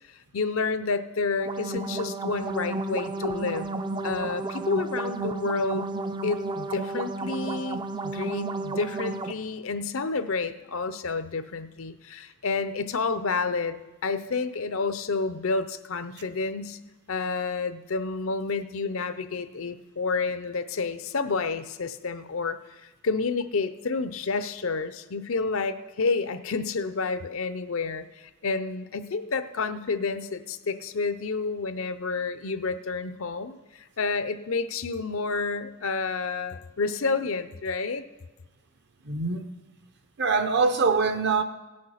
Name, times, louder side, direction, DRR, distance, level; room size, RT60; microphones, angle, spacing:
voice 1, 0.3-3.7 4.0-5.9 6.2-16.8 17.1-38.0, left 4 dB, 65° left, 0.6 m, -29 dB
sound 1, 1.3-9.3, right 3 dB, 20° right, 0.4 m, -32 dB
voice 2, 39.0-39.5 40.2-41.4, right 4 dB, 50° right, 0.8 m, -23 dB
17.0 x 6.5 x 5.7 m
head